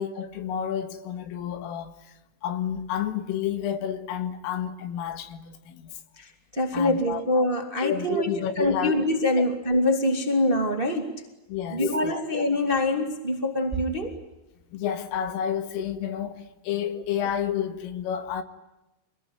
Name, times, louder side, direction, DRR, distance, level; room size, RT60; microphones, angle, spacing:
voice 1, 0.0-1.9 2.4-5.9 6.7-7.2 7.8-8.9 9.4-9.5 11.5-12.2 14.7-18.4, left 9 dB, 85° left, 4.3 m, -30 dB
voice 2, 6.5-8.3 8.6-11.1 11.7-14.1, left 1 dB, 15° right, 1.7 m, -24 dB
26.5 x 21.0 x 9.4 m
omnidirectional pair, 5.8 m